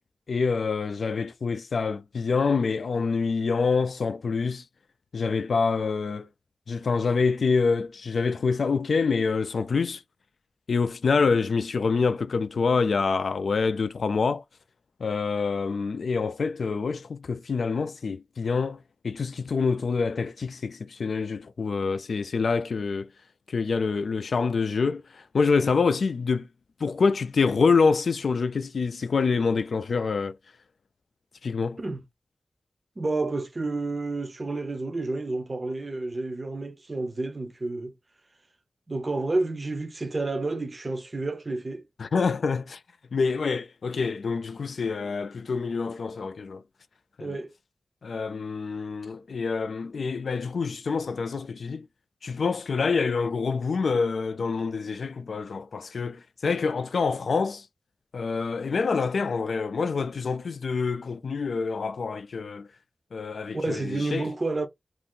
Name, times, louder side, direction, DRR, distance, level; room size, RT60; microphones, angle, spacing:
voice 1, 0.3-4.6 5.1-6.3 6.7-10.0 10.7-14.4 15.0-23.1 23.5-26.5 26.8-30.4 31.4-31.8 42.0-42.8 43.1-46.6 47.2-47.4 48.0-51.9 52.2-57.6 58.1-62.7 63.1-64.3, left 4 dB, 85° left, 0.3 m, -26 dB
voice 2, 33.0-37.9 38.9-41.8 47.2-47.5 63.5-64.7, right 2 dB, 35° right, 0.5 m, -30 dB
2.7 x 2.5 x 3.6 m
wide cardioid pair, 115°, 0 cm